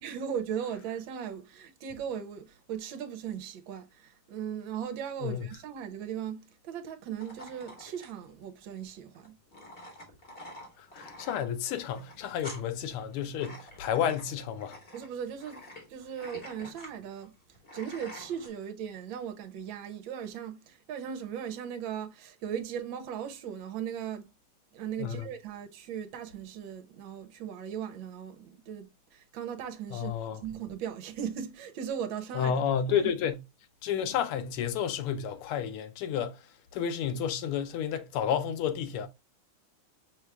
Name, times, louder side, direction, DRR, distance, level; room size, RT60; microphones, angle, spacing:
voice 1, 0.0-9.4 14.9-17.3 17.7-24.3 24.7-32.6 32.9-33.1, right 8 dB, 70° right, 1.4 m, -38 dB
sound 1, 7.2-18.5, left 1 dB, 30° left, 1.3 m, -48 dB
voice 2, 10.8-14.8 25.0-25.3 29.9-30.4 32.3-33.4 33.8-36.4 36.7-39.1, left 8 dB, 85° left, 1.6 m, -31 dB
6.0 x 2.3 x 3.3 m
omnidirectional pair, 2.4 m